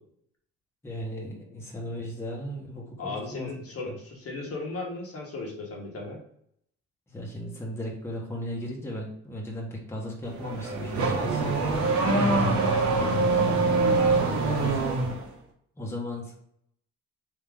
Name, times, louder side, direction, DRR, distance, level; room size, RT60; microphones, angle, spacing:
voice 1, 0.8-3.5 3.9-4.0 7.1-12.0 12.3-12.6 12.9-13.4 14.3-14.8 15.8-16.3, equal, 10° left, -3 dB, 1.1 m, -36 dB
voice 2, 3.0-6.2 12.0-12.3, left 3 dB, 50° left, -1 dB, 1.2 m, -36 dB
Car / Accelerating revving vroom, 10.2-15.2, right 3 dB, 70° right, 1.0 m, -24 dB
3.6 x 2.8 x 3.4 m, 0.71 s
cardioid pair, 90°, 30 cm